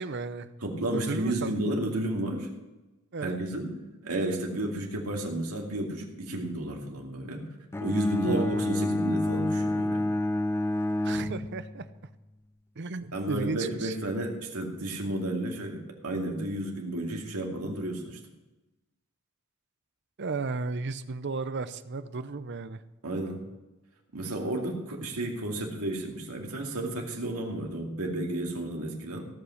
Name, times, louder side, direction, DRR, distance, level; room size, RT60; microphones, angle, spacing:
voice 1, 0.0-0.5 0.9-1.5 3.1-3.4 8.2-8.6 11.0-11.9 12.8-14.0 20.2-22.8, right 3 dB, 50° right, 12 dB, 0.6 m, -34 dB
voice 2, 0.6-2.5 3.2-3.7 4.0-7.5 7.8-10.1 13.1-18.2 23.0-23.4 24.1-29.3, right 1 dB, 85° right, 0 dB, 2.4 m, -32 dB
Bowed string instrument, 7.7-12.0, left 1 dB, 10° left, 0.3 m, -29 dB
17.0 x 5.8 x 6.4 m, 1.1 s
head